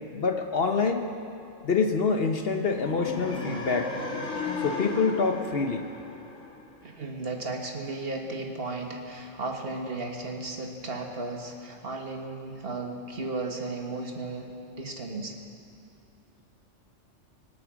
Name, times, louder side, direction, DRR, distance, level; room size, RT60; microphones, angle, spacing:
voice 1, 0.1-1.1 1.6-3.9 4.6-5.9, left 4 dB, 55° left, 5 dB, 1.1 m, -26 dB
sound 1, 2.7-6.8, left 3 dB, 80° left, 1.9 m, -35 dB
voice 2, 6.8-15.4, right 2 dB, 50° right, 2 dB, 1.6 m, -35 dB
24.5 x 8.6 x 6.2 m, 2.8 s
omnidirectional pair, 1.3 m